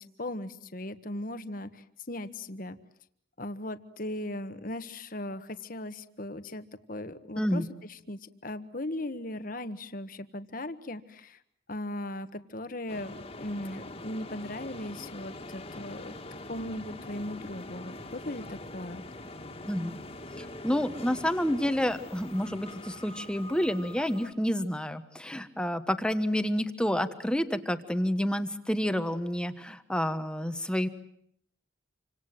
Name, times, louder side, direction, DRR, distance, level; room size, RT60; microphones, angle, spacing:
voice 1, 0.0-2.8 3.4-11.4 11.7-16.2 16.5-19.0, left 1 dB, 50° left, 10 dB, 1.5 m, -38 dB
sound 1, 12.9-24.3, left 2 dB, 30° left, 2.1 m, -44 dB
voice 2, 19.7-20.0 20.4-30.9, equal, 5° left, 9 dB, 1.3 m, -29 dB
28.5 x 26.0 x 7.7 m, 0.69 s
head